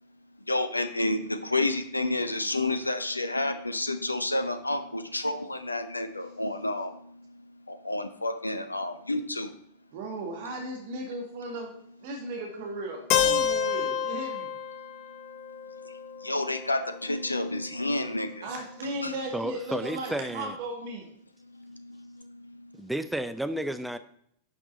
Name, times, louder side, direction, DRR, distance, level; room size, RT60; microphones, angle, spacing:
voice 1, 0.5-9.5 15.1-15.3 15.8-18.5 18.8-19.1 21.4-22.8, left 2 dB, 85° left, 10 dB, 0.7 m, -30 dB
voice 2, 9.9-11.7 12.0-14.5 18.4-21.1, right 2 dB, 50° right, 1 dB, 2.0 m, -36 dB
Keyboard (musical), 13.1-17.0, left 8 dB, 40° left, 0.7 m, -29 dB
voice 3, 19.3-20.6 22.7-24.0, right 1 dB, 5° right, 10 dB, 0.6 m, -32 dB
10.5 x 6.1 x 3.9 m, 0.69 s
figure-of-eight pair, 90°, 0 cm